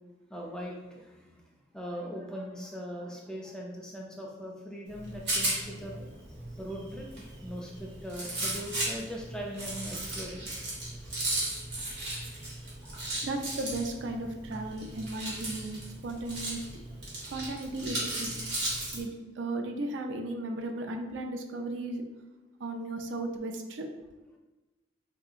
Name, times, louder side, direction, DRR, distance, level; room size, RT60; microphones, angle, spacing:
voice 1, 0.3-1.4 1.7-6.2 6.5-10.4 13.2-13.3, equal, 5° left, -1 dB, 0.3 m, -40 dB
Rattle, 4.9-19.0, right 1 dB, 65° right, 1.1 m, -36 dB
voice 2, 13.2-16.6 17.3-18.3 18.9-22.0 22.6-23.9, right 2 dB, 85° right, 5 dB, 0.4 m, -35 dB
3.5 x 2.8 x 2.4 m, 1.1 s
head